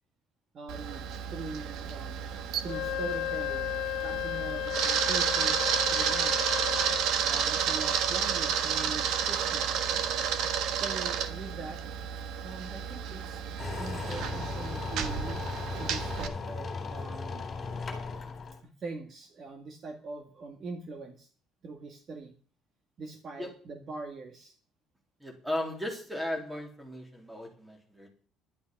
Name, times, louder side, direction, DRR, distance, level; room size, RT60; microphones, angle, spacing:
voice 1, 0.5-1.0 1.3-2.4 2.6-6.4 7.3-9.7 10.7-11.8 12.4-13.5 13.8-15.4 15.8-17.5 18.6-21.3 21.6-22.3 23.0-24.5, right 3 dB, 40° right, 5 dB, 1.8 m, -42 dB
Camera, 0.7-16.3, right 8 dB, 70° right, 1.5 m, -31 dB
Wind instrument woodwind instrument, 2.6-7.1, left 16 dB, 75° left, 0.7 m, -34 dB
sound 1, 13.6-18.6, left 4 dB, 30° left, 3.8 m, -37 dB
voice 2, 25.2-28.1, left 1 dB, 5° right, 2 dB, 3.5 m, -36 dB
11.5 x 11.5 x 5.4 m, 0.43 s
cardioid pair, 135°, 0 cm